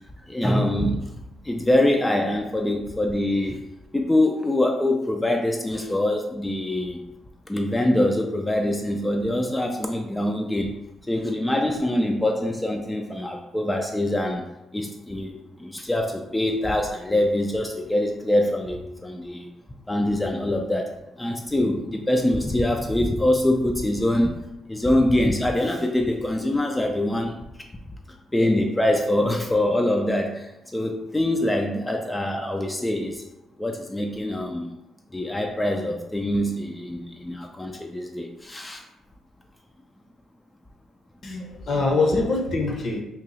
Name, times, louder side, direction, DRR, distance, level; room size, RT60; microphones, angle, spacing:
voice 1, 0.3-1.0 1.4-3.6 3.9-7.0 7.5-10.7 11.1-14.5 14.7-19.5 19.9-20.9 21.2-27.4 28.3-30.5 30.7-33.2 33.6-34.7 35.1-38.8, left 1 dB, 10° left, 2 dB, 0.3 m, -24 dB
voice 2, 41.2-43.0, left 3 dB, 55° left, 1 dB, 0.7 m, -24 dB
2.8 x 2.3 x 3.9 m, 0.89 s
cardioid pair, 90°, 0 cm